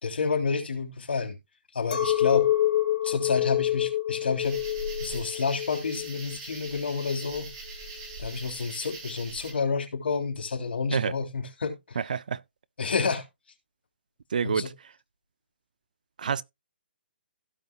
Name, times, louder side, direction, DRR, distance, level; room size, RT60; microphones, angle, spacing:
voice 1, 0.0-1.3 1.7-2.5 3.0-4.6 5.0-7.5 8.2-12.0 12.8-13.2 14.4-14.7, left 5 dB, 75° left, 3.1 m, -29 dB
Chink clink, 1.9-7.4, left 12 dB, 50° left, 1.4 m, -27 dB
sound 1, 4.4-9.5, right 3 dB, 20° right, 2.5 m, -41 dB
voice 2, 12.0-12.4 14.3-14.7 16.2-16.4, right 6 dB, 50° right, 0.4 m, -27 dB
16.5 x 5.6 x 2.3 m
hypercardioid pair, 175°, 6 cm